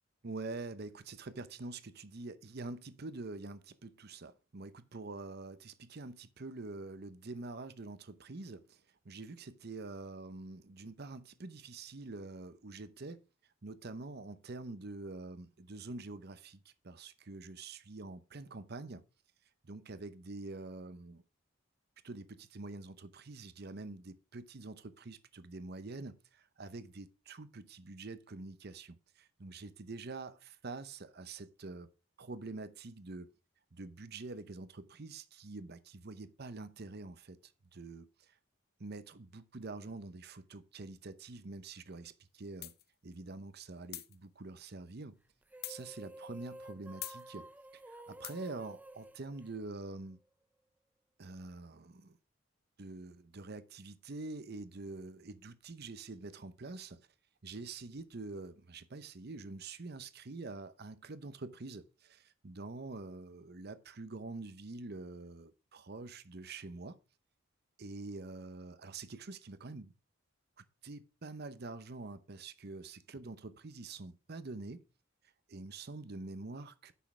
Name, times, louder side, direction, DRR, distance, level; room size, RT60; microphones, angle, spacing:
voice 1, 0.2-13.2 13.6-19.0 19.6-21.2 22.0-31.9 32.2-33.3 33.7-38.4 38.8-42.7 43.0-45.2 45.7-47.5 47.7-50.2 51.2-52.2 52.8-57.0 57.4-67.0 67.8-69.9 70.6-74.8 75.5-76.9, right 3 dB, 50° right, 0.8 m, -46 dB
sound 1, 42.6-42.8 43.9-44.2 45.6-45.8 47.0-47.2 48.2-48.5, left 14 dB, 50° left, 0.8 m, -43 dB
sound 2, 45.4-50.1, right 1 dB, 10° right, 0.4 m, -51 dB
9.2 x 6.4 x 4.9 m
head